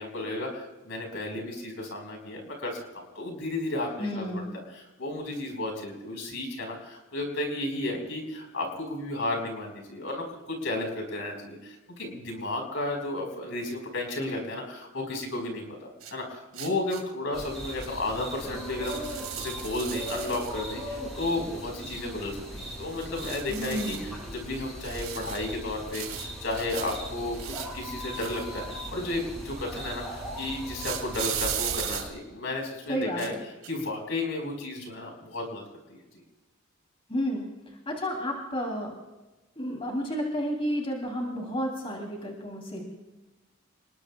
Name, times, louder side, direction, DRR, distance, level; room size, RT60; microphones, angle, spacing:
voice 1, 0.0-33.3 33.7-35.6, left 2 dB, 65° left, 3 dB, 4.6 m, -33 dB
voice 2, 4.0-4.5 23.5-24.0 32.9-33.4 37.1-37.4 37.9-38.9 39.6-42.8, equal, 25° left, 1 dB, 3.2 m, -31 dB
sound 1, 16.0-16.1 16.5-17.0 17.8-17.9 18.8-20.6 23.0-24.0 24.8-25.5 25.9-27.0 27.3-28.8 30.8-32.0 33.0-33.4 33.6-33.8, right 10 dB, 75° right, 2.8 m, -36 dB
sound 2, 17.3-32.1, equal, ahead, 7.7 m, -39 dB
30.0 x 20.5 x 2.4 m, 1.1 s
head